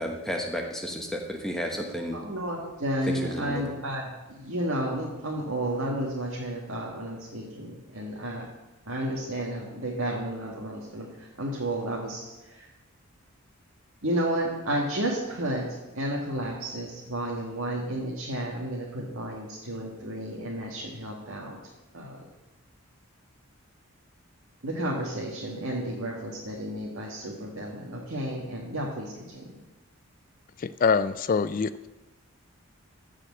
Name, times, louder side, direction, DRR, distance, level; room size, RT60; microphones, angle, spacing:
voice 1, 0.0-2.2 3.1-3.7, equal, ahead, 1 dB, 1.1 m, -32 dB
voice 2, 2.1-8.5 8.9-12.7 14.0-15.7 15.9-21.6 21.9-22.3 24.6-29.5, right 1 dB, 70° right, -3 dB, 1.8 m, -32 dB
voice 3, 30.6-31.9, left 5 dB, 40° left, 14 dB, 0.3 m, -25 dB
14.5 x 5.0 x 7.6 m, 1.1 s
head